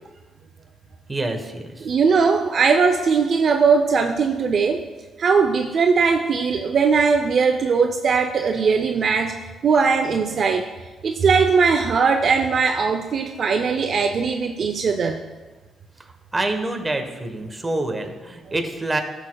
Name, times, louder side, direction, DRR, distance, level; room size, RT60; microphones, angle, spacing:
voice 1, 1.1-1.9 16.3-19.0, right 2 dB, 20° right, 5 dB, 1.1 m, -26 dB
voice 2, 1.8-4.8 5.2-9.4 9.6-10.6 11.0-15.2, right 5 dB, 55° right, 5 dB, 0.5 m, -19 dB
13.5 x 6.5 x 2.3 m, 1.2 s
cardioid pair, 90°, 0 cm